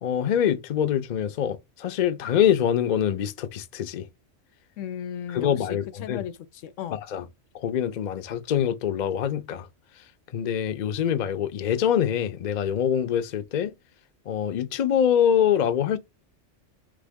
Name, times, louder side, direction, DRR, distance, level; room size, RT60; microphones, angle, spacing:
voice 1, 0.0-4.1 5.3-6.2 7.1-7.2 7.5-9.7 10.3-13.7 14.3-16.0, left 9 dB, 50° left, 0.6 m, -24 dB
voice 2, 4.8-7.0, left 9 dB, 85° left, 0.9 m, -36 dB
3.8 x 3.4 x 3.5 m
omnidirectional pair, 1.3 m